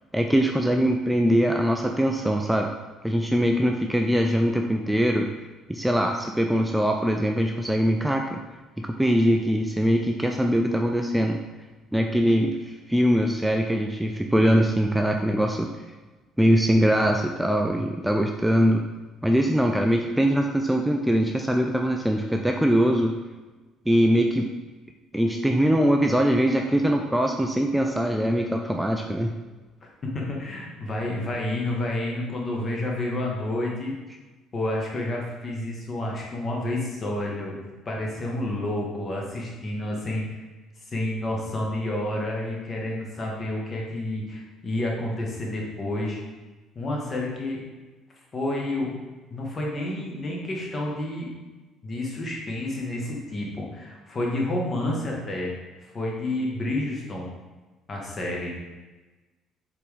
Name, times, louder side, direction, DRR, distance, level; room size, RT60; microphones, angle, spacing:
voice 1, 0.1-2.7 3.0-5.3 5.7-8.4 8.8-11.4 11.9-15.7 16.4-18.8 19.2-23.1 23.9-24.5 25.1-29.3, equal, 5° right, 2 dB, 0.3 m, -22 dB
voice 2, 30.1-33.9 34.5-40.4 40.9-46.2 46.7-47.6 48.3-48.9 49.3-51.3 51.8-55.5 55.8-57.3 57.9-58.5, left 1 dB, 35° left, -2 dB, 1.2 m, -29 dB
4.4 x 3.6 x 3.3 m, 1.2 s
figure-of-eight pair, 50°, 0 cm